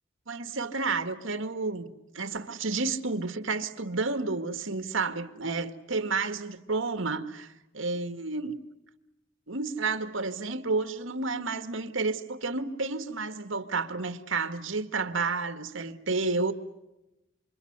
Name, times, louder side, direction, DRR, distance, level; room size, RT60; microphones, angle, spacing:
voice 1, 0.3-8.6 9.5-16.5, right 3 dB, 80° right, 1.9 m, -31 dB
28.0 x 26.5 x 8.1 m
head